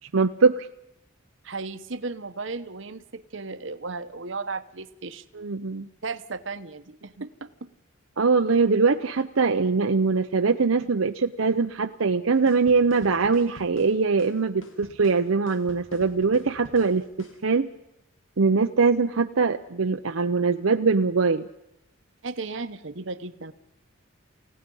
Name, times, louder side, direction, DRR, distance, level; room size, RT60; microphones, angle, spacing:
voice 1, 0.1-0.7 5.3-5.9 8.2-17.7 18.4-21.5, right 4 dB, 85° right, 6 dB, 0.8 m, -22 dB
voice 2, 1.4-5.2 6.0-7.7 22.2-23.5, right 3 dB, 70° right, 11 dB, 1.1 m, -35 dB
sound 1, 12.5-17.4, left 1 dB, 70° left, 2.1 m, -47 dB
29.0 x 16.5 x 5.5 m, 0.85 s
head